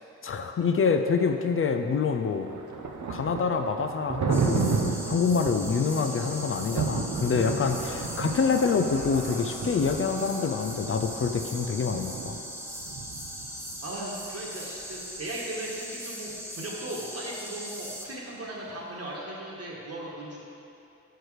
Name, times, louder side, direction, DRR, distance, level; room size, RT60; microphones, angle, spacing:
voice 1, 0.2-2.5 3.1-12.4, left 5 dB, 45° left, 6 dB, 0.4 m, -26 dB
Thunder, 2.0-13.8, right 5 dB, 70° right, 0.7 m, -33 dB
sound 1, 3.8-14.1 14.7-14.8, equal, 30° right, 1.4 m, -45 dB
sound 2, 4.3-18.1, equal, 10° right, 0.9 m, -40 dB
voice 2, 13.8-20.4, right 1 dB, 50° right, -4 dB, 1.5 m, -37 dB
6.4 x 4.6 x 4.8 m, 2.8 s
cardioid pair, 50°, 30 cm